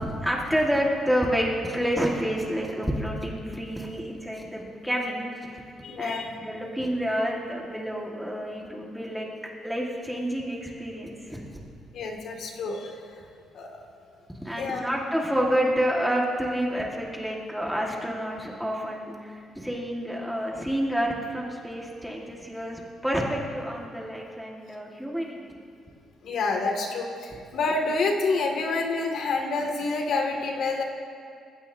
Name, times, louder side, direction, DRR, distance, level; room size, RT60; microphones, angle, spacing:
voice 1, 0.2-5.2 5.5-5.6 6.0-11.4 14.4-25.4, equal, ahead, -2 dB, 1.6 m, -29 dB
voice 2, 5.8-6.3 11.9-13.0 13.5-13.7 14.6-14.9 26.2-30.8, left 3 dB, 60° left, 2 dB, 2.0 m, -28 dB
28.0 x 16.0 x 2.7 m, 2.3 s
cardioid pair, 175°, 0 cm